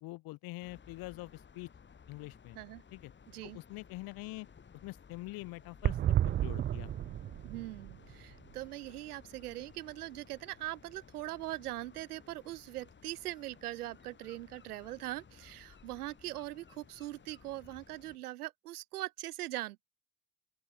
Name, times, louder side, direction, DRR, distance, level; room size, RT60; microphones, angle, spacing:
voice 1, 0.0-1.7 2.1-2.6 2.9-3.1 3.4-4.5 4.7-6.0 6.2-6.9, left 21 dB, 50° left, 1.3 m, -45 dB
sound 1, 0.6-18.2, left 6 dB, 25° left, 2.1 m, -58 dB
sound 2, 5.8-9.6 9.9-10.0 10.2-10.3, right 11 dB, 25° right, 0.5 m, -33 dB
voice 2, 7.4-19.8, right 16 dB, 75° right, 0.5 m, -41 dB
open air
figure-of-eight pair, 60°, 45 cm